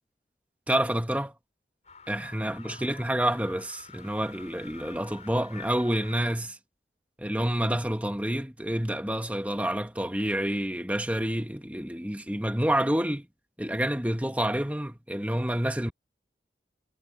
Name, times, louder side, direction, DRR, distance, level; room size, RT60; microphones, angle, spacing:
voice 1, 0.7-1.3 2.1-6.6 7.2-13.3 13.6-15.9, right 1 dB, 10° right, 1.6 m, -28 dB
sound 1, 1.8-6.4, left 5 dB, 40° left, 7.2 m, -49 dB
head